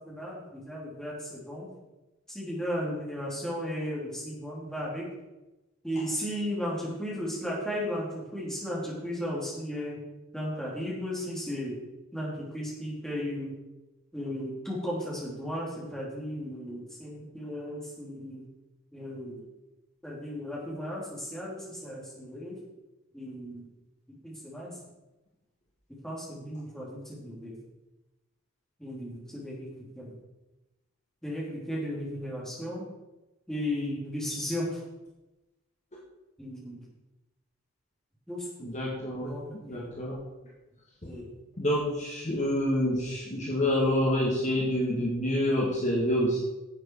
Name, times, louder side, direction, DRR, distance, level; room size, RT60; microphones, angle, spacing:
voice 1, 0.0-1.7 2.3-5.0 5.8-10.0 10.3-11.8 12.1-13.5 14.1-18.5 18.9-19.4 20.0-22.5 23.1-23.6 24.1-24.7 26.0-27.6 28.8-29.7 29.9-30.1 31.2-32.9 33.5-34.8 36.4-36.8 38.3-38.7 39.2-39.9 41.0-41.3, equal, ahead, -6 dB, 3.1 m, -35 dB
voice 2, 38.6-39.3 39.7-40.2 41.0-41.1 41.6-46.4, left 1 dB, 35° left, -4 dB, 2.0 m, -27 dB
10.5 x 8.0 x 4.7 m, 1.0 s
head